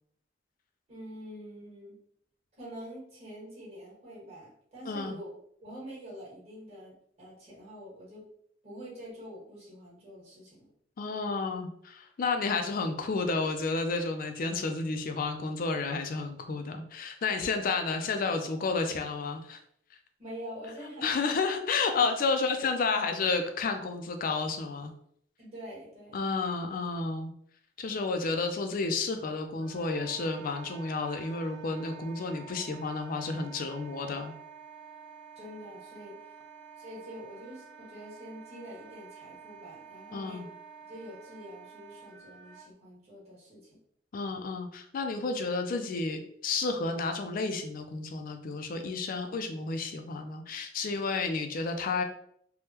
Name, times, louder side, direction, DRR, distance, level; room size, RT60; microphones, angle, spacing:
voice 1, 0.9-2.0 2.6-8.3 8.6-10.7 20.2-21.3 25.4-26.3 35.3-36.2 36.8-40.5 40.9-43.8, equal, 35° right, -8 dB, 1.5 m, -46 dB
voice 2, 4.9-5.2 11.0-19.6 21.0-24.9 26.1-27.3 27.8-34.3 40.1-40.5 44.1-52.0, left 4 dB, 50° left, 6 dB, 0.4 m, -31 dB
Wind instrument woodwind instrument, 29.6-42.7, right 6 dB, 80° right, 0.8 m, -50 dB
3.4 x 2.2 x 2.8 m, 0.67 s
head